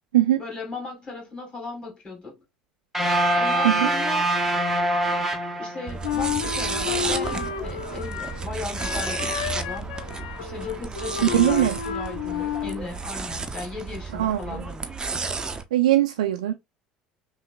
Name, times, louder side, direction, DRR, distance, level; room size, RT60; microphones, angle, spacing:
voice 1, 0.4-2.4 3.3-4.3 5.6-14.9, left 3 dB, 25° left, 2.0 m, -37 dB
sound 1, 2.9-6.2, right 1 dB, 5° right, 0.9 m, -24 dB
sound 2, 5.9-15.6, right 4 dB, 20° right, 0.5 m, -32 dB
Wind instrument woodwind instrument, 6.0-8.5 8.8-12.8, left 8 dB, 70° left, 0.4 m, -31 dB
voice 2, 11.3-11.8 14.1-14.4 15.7-16.5, right 13 dB, 70° right, 0.3 m, -20 dB
5.5 x 2.1 x 2.4 m
figure-of-eight pair, 65°, 4 cm